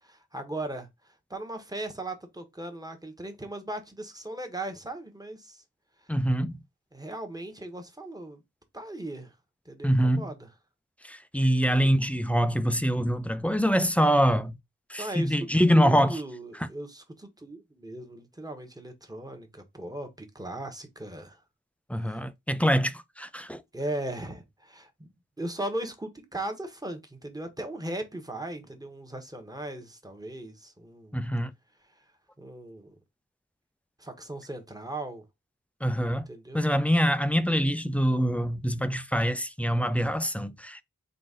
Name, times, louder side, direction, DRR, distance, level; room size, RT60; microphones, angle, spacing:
voice 1, 0.0-5.6 6.0-6.1 6.9-8.4 8.7-9.3 9.6-10.5 11.8-11.9 15.0-21.4 22.0-22.2 23.7-25.1 25.4-31.2 31.9-32.0 32.4-32.9 34.0-35.2 36.3-36.6, right 1 dB, 10° right, 1.0 m, -38 dB
voice 2, 6.1-6.6 9.8-10.3 11.0-14.6 14.9-16.2 21.9-23.6 31.1-31.5 35.8-36.3 36.5-40.8, equal, 5° left, 0.4 m, -24 dB
4.0 x 2.5 x 3.6 m
wide cardioid pair, 40°, 32 cm